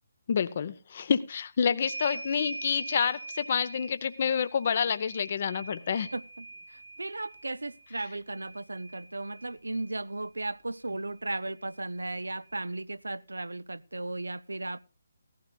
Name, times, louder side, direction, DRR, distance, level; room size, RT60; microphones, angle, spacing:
voice 1, 0.3-6.1, left 7 dB, 45° left, 0.7 m, -28 dB
sound 1, 1.8-9.9 11.2-11.3 11.6-12.7, right 2 dB, 55° right, 1.7 m, -44 dB
voice 2, 6.1-14.8, right 2 dB, 75° right, 0.5 m, -36 dB
17.5 x 15.0 x 2.3 m
figure-of-eight pair, 145°, 0 cm